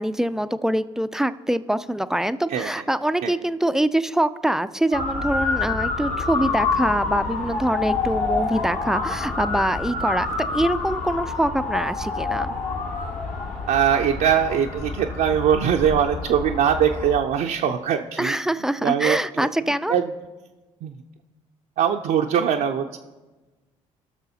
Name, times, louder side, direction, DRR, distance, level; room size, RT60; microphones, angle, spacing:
voice 1, 0.0-12.5 18.2-20.0, right 1 dB, 5° right, 13 dB, 0.3 m, -24 dB
Motor vehicle (road) / Siren, 4.9-17.2, left 4 dB, 55° left, 1.4 m, -27 dB
voice 2, 13.7-18.4 18.8-19.5 19.9-20.1 20.8-20.9 21.8-23.0, right 8 dB, 65° right, 1 dB, 0.5 m, -21 dB
17.5 x 6.2 x 2.8 m, 1.2 s
supercardioid pair, 65°, 16 cm